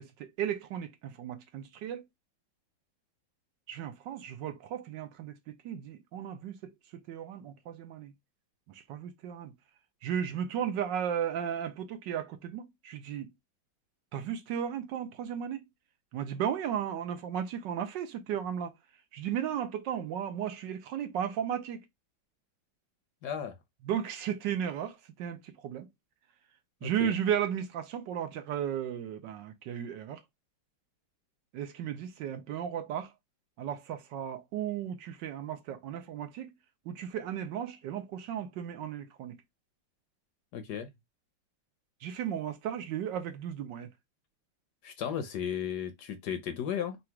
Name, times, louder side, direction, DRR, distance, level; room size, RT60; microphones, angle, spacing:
voice 1, 0.0-2.1 3.7-8.1 8.7-9.5 10.0-13.3 14.1-15.6 16.1-18.7 19.1-21.8 23.8-25.9 26.8-30.2 31.5-33.1 33.6-36.5 36.9-39.4 42.0-43.9, right 9 dB, 75° right, 1.2 m, -35 dB
voice 2, 23.2-23.5 26.8-27.1 40.5-40.9 44.8-47.0, left 8 dB, 65° left, 1.1 m, -35 dB
3.9 x 2.4 x 4.4 m
omnidirectional pair, 2.1 m